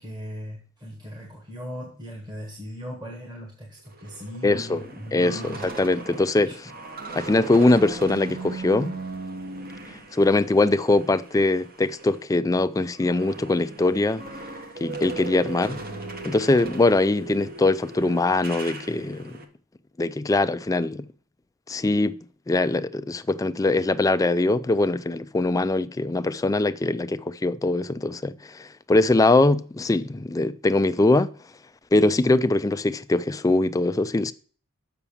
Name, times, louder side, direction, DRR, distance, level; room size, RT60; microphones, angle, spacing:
voice 1, 0.0-5.7 6.5-6.6, equal, 20° right, 1.6 m, -38 dB
sound 1, 3.9-12.3 12.6-19.4, right 3 dB, 45° right, 1.2 m, -38 dB
voice 2, 4.4-4.8 5.1-6.7 7.1-8.9 10.1-14.2 14.8-15.8 16.2-19.4 20.0-21.1 21.7-22.2 22.5-31.3 31.9-34.3, left 2 dB, 15° left, 0.3 m, -22 dB
7.0 x 6.0 x 7.0 m
head